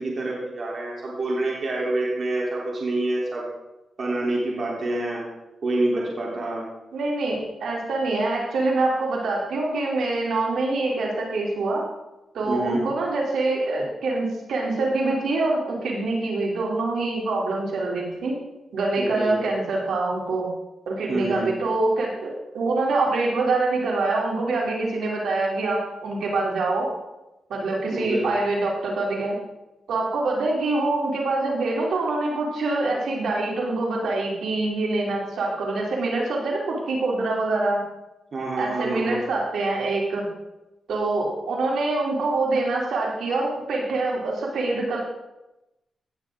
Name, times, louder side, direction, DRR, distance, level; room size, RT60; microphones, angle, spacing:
voice 1, 0.0-3.4 4.0-5.2 5.6-6.6 12.4-12.8 19.0-19.3 21.1-21.5 27.9-28.3 38.3-39.2, right 2 dB, 55° right, -4 dB, 3.3 m, -27 dB
voice 2, 6.9-11.8 12.3-18.3 18.7-20.5 20.9-26.9 27.5-29.4 29.9-37.8 38.6-40.3 40.9-45.0, right 2 dB, 80° right, -2 dB, 3.2 m, -25 dB
18.0 x 7.1 x 3.8 m, 0.98 s
cardioid pair, 75°, 0 cm